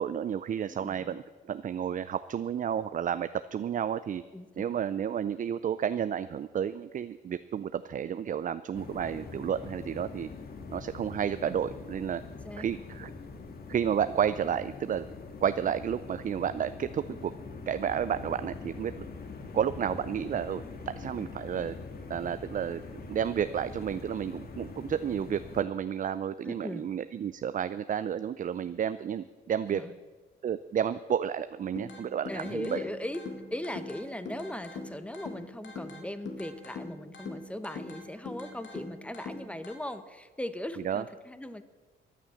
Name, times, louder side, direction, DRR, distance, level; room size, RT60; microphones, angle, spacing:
voice 1, 0.0-4.2 4.6-10.3 10.7-12.2 12.6-13.1 13.7-15.0 15.4-17.3 17.7-19.0 19.5-21.8 22.1-22.8 23.1-29.8 30.4-32.8 40.8-41.0, right 8 dB, 40° right, 13 dB, 0.5 m, -31 dB
voice 2, 0.7-1.2 4.3-4.8 12.4-12.7 26.4-26.9 29.7-29.9 32.3-33.2 33.5-41.6, left 1 dB, 5° left, 11 dB, 1.1 m, -39 dB
sound 1, 8.7-25.6, left 4 dB, 50° left, 1.8 m, -43 dB
sound 2, 31.8-39.8, left 3 dB, 65° left, 2.5 m, -43 dB
14.5 x 10.0 x 7.1 m, 1.3 s
cardioid pair, 90°, 20 cm